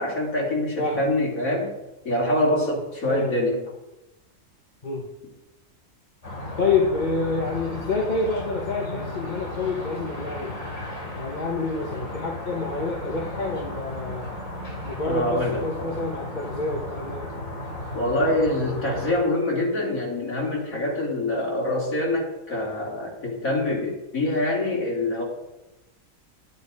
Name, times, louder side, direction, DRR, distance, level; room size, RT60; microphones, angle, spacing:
voice 1, 0.0-1.7 2.0-3.6 15.0-15.9 17.9-25.2, left 1 dB, 80° left, -2 dB, 3.2 m, -25 dB
voice 2, 3.0-3.4 4.8-5.1 6.6-10.6 11.1-14.3 14.9-17.2, left 3 dB, 35° left, -1 dB, 1.3 m, -28 dB
sound 1, 6.2-19.1, left 1 dB, 60° left, 3.4 m, -35 dB
10.5 x 9.5 x 4.9 m, 0.98 s
omnidirectional pair, 1.4 m